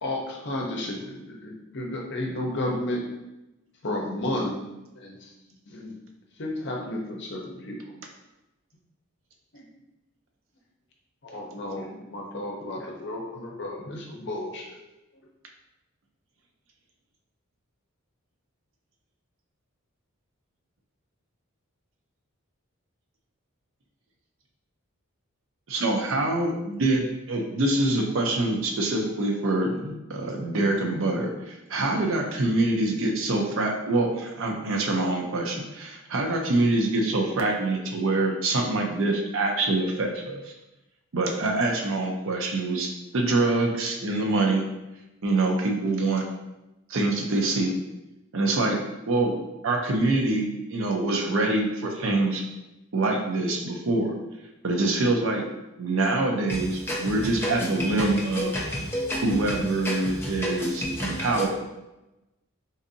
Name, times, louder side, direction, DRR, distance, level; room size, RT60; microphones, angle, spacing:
voice 1, 0.0-3.0 3.8-4.5 5.0-5.1 5.7-5.9 6.4-7.9 9.5-9.7 11.2-14.6, left 1 dB, 55° left, 0.6 m, -32 dB
voice 2, 25.7-40.5 41.1-42.9 43.1-44.6 45.2-46.2 46.9-47.7 48.3-48.8 49.1-52.4 52.9-54.1 54.6-55.4 55.8-58.5 59.1-61.5, right 2 dB, 65° right, 0.5 m, -25 dB
voice 3, 58.4-59.4 59.8-61.5, equal, 10° left, 0.5 m, -30 dB
3.9 x 2.6 x 2.6 m
head